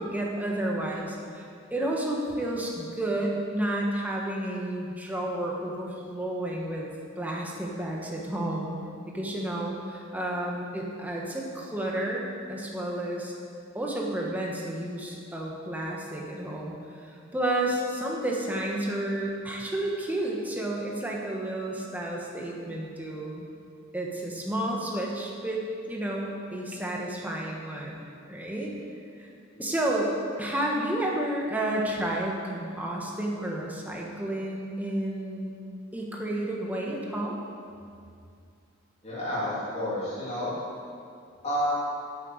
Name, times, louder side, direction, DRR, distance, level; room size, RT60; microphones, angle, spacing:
voice 1, 0.0-8.8 9.1-12.2 12.5-13.3 13.7-16.8 17.0-23.5 23.9-25.6 25.9-28.0 28.3-28.7 29.2-29.3 29.6-30.1 30.4-35.5 35.9-37.4, right 1 dB, 5° right, -2 dB, 1.3 m, -31 dB
voice 2, 39.0-40.5 41.4-41.7, equal, 30° left, -10 dB, 3.1 m, -30 dB
9.3 x 7.6 x 7.9 m, 2.4 s
head